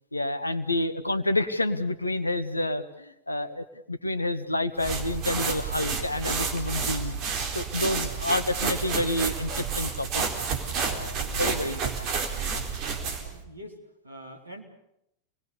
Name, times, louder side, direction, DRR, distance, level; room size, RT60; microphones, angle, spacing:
voice 1, 0.1-7.2 7.5-10.2 10.8-11.9, left 1 dB, 85° left, 11 dB, 1.4 m, -29 dB
sound 1, 4.8-13.4, right 5 dB, 40° right, 4.1 m, -30 dB
voice 2, 13.1-13.8 14.0-14.6, equal, 80° right, 2 dB, 4.0 m, -45 dB
29.0 x 20.5 x 7.0 m, 0.81 s
figure-of-eight pair, 90°, 0 cm